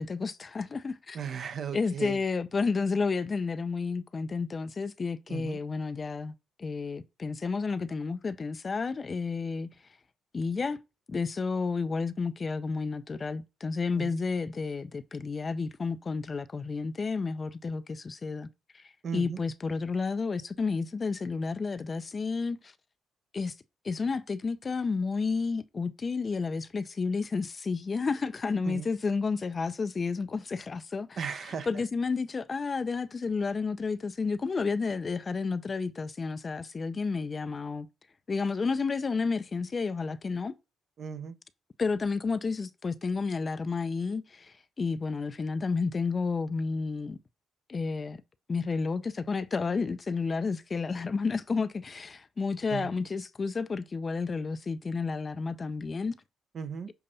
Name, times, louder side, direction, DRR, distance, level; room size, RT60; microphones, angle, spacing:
voice 1, 0.0-1.2 1.7-9.7 10.3-10.8 11.1-18.5 18.7-18.8 19.1-22.7 23.3-23.5 23.8-37.9 38.3-40.5 41.8-47.2 47.7-48.2 48.5-56.2, left 4 dB, 35° left, 0.5 m, -31 dB
voice 2, 1.1-2.2 5.3-5.6 14.0-14.2 19.0-19.4 28.7-28.9 31.2-31.7 41.0-41.4 52.7-52.9 56.5-56.9, right 7 dB, 55° right, 0.7 m, -36 dB
6.8 x 2.5 x 5.5 m
cardioid pair, 90°, 0 cm